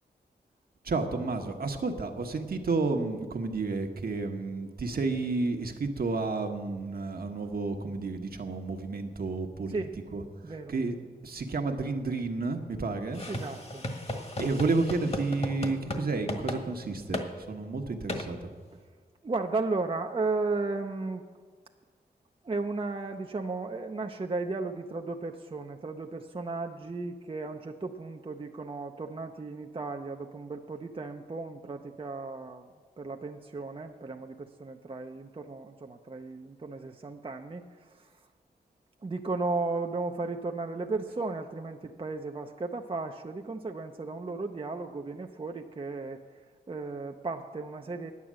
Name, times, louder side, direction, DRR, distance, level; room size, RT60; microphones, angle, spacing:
voice 1, 0.8-10.9 11.2-13.2 14.4-18.5, right 3 dB, 60° right, 4 dB, 1.3 m, -31 dB
voice 2, 10.4-10.7 13.3-13.8 19.2-21.2 22.4-32.7 33.0-38.1 39.0-46.2 46.7-48.1, right 3 dB, 30° right, 4 dB, 0.7 m, -35 dB
sound 1, 13.1-16.0 16.3-16.6 17.1-17.3 18.1-18.3, left 1 dB, 35° left, 1.5 m, -34 dB
9.6 x 9.2 x 7.5 m, 1.5 s
cardioid pair, 60°, 17 cm